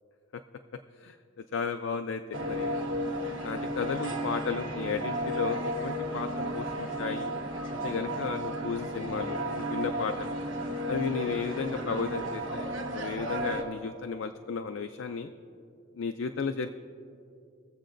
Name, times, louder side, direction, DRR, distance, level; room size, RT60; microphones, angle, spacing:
voice 1, 1.5-2.9 3.4-6.3 6.5-7.3 7.8-10.4 10.9-15.3 16.0-16.7, left 5 dB, 70° left, 7 dB, 0.4 m, -34 dB
sound 1, 2.3-13.6, equal, 65° right, 1.3 m, -33 dB
21.5 x 7.4 x 2.6 m, 2.5 s
head